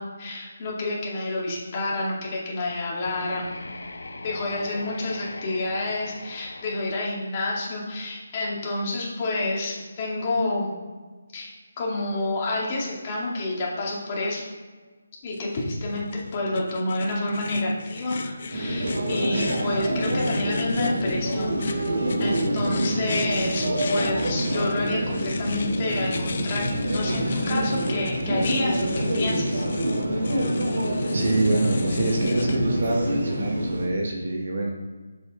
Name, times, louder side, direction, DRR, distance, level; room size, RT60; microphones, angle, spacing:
voice 1, 0.0-3.5 4.2-10.7 11.3-14.4 15.2-21.9 22.2-29.6, left 2 dB, 25° left, -4 dB, 2.2 m, -29 dB
sound 1, 3.0-8.0, left 2 dB, 90° left, 1.0 m, -40 dB
sound 2, 15.3-32.6, left 4 dB, 45° left, 0.7 m, -36 dB
sound 3, 18.5-33.9, right 1 dB, 80° right, 2.5 m, -26 dB
voice 2, 31.1-34.7, right 2 dB, 55° right, 1 dB, 1.3 m, -25 dB
7.0 x 6.2 x 4.1 m, 1.4 s
hypercardioid pair, 170°, 0 cm